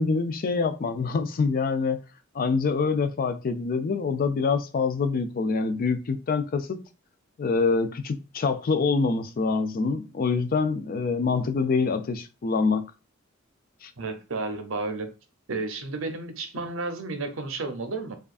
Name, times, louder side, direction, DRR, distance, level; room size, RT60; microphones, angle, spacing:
voice 1, 0.0-2.0 2.3-6.8 7.4-12.9 13.8-13.9, left 4 dB, 45° left, 0.4 m, -25 dB
voice 2, 14.0-15.1 15.5-18.2, right 3 dB, 75° right, 0.7 m, -32 dB
4.8 x 2.4 x 2.4 m
head